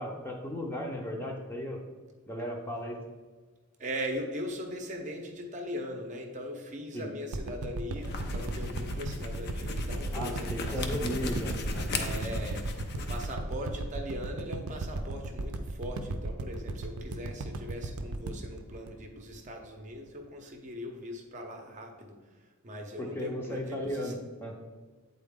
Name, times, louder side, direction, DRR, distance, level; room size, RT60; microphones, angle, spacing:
voice 1, 0.0-1.8 2.3-3.0 6.9-7.1 10.1-11.9 23.0-24.6, equal, 10° left, 0 dB, 0.7 m, -35 dB
voice 2, 3.8-10.9 11.9-12.7 13.0-22.2 22.6-24.1, equal, 35° right, 2 dB, 0.7 m, -40 dB
sound 1, 7.3-19.7 20.1-20.2, right 2 dB, 90° right, 0.5 m, -36 dB
sound 2, 8.0-13.3, left 2 dB, 50° left, 0.6 m, -36 dB
8.6 x 4.1 x 3.6 m, 1.4 s
head